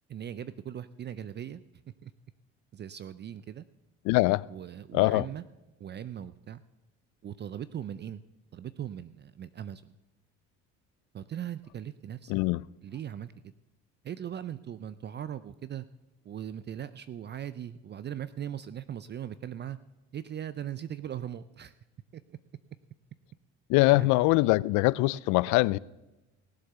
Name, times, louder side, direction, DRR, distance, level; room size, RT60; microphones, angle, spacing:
voice 1, 0.1-1.6 2.0-2.1 2.7-3.7 4.5-5.4 5.8-6.6 7.2-8.2 8.5-9.9 11.1-12.3 12.8-13.5 14.0-15.9 16.2-19.8 20.1-21.7 22.1-22.4 23.9-24.1, right 10 dB, 35° right, 0.5 m, -39 dB
voice 2, 4.1-4.5 4.9-5.3 12.3-12.6 23.7-25.8, left 21 dB, 75° left, 0.4 m, -23 dB
18.0 x 7.9 x 6.8 m
supercardioid pair, 95°, 30 cm